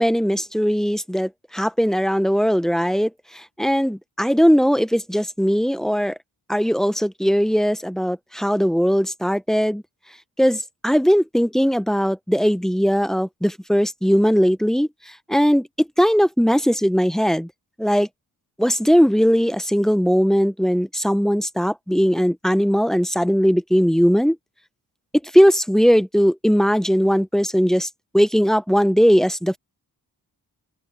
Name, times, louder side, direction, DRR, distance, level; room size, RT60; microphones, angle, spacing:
voice 1, 0.0-3.1 3.6-6.1 6.5-9.8 10.4-14.9 15.3-15.7 16.0-17.5 17.8-18.1 18.6-24.4 25.3-27.9 28.1-29.6, equal, ahead, 0.6 m, -19 dB
open air
wide cardioid pair, 95°, 38 cm